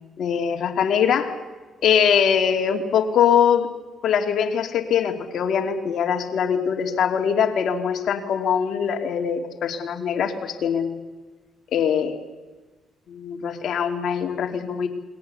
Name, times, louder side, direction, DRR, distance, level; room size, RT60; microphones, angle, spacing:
voice 1, 0.2-1.3 1.8-3.7 4.0-11.0 11.7-12.2 13.1-14.9, left 7 dB, 70° left, 5 dB, 2.8 m, -22 dB
29.0 x 21.5 x 7.0 m, 1.3 s
cardioid pair, 100°, 0 cm